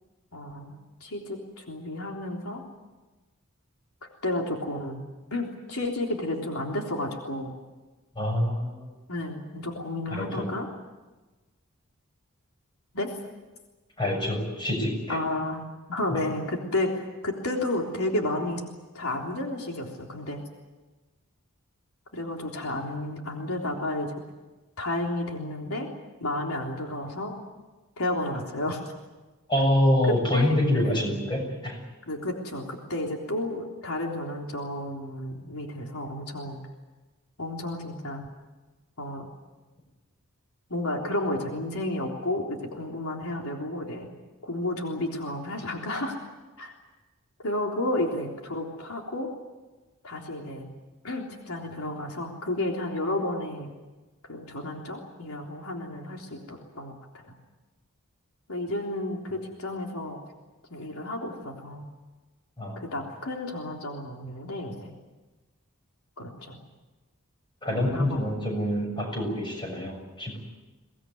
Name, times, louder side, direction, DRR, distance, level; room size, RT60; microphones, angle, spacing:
voice 1, 0.3-2.7 4.2-5.0 5.3-7.5 9.1-10.7 12.9-13.1 15.1-18.6 18.9-20.4 22.1-24.1 24.8-25.9 26.2-27.4 28.0-28.9 30.0-31.1 32.1-36.6 37.4-38.3 39.0-39.3 40.7-44.1 44.4-46.2 46.6-46.8 47.4-49.3 50.0-50.7 51.0-53.7 54.3-57.3 58.5-60.2 60.7-61.8 62.8-64.9 66.2-66.6 67.7-68.3, left 1 dB, 75° left, 0 dB, 3.6 m, -32 dB
voice 2, 8.1-8.9 10.1-10.5 14.0-15.2 16.1-16.2 29.5-31.8 62.6-62.8 67.6-70.4, left 1 dB, 20° left, 2 dB, 6.8 m, -26 dB
24.0 x 19.0 x 9.5 m, 1.2 s
head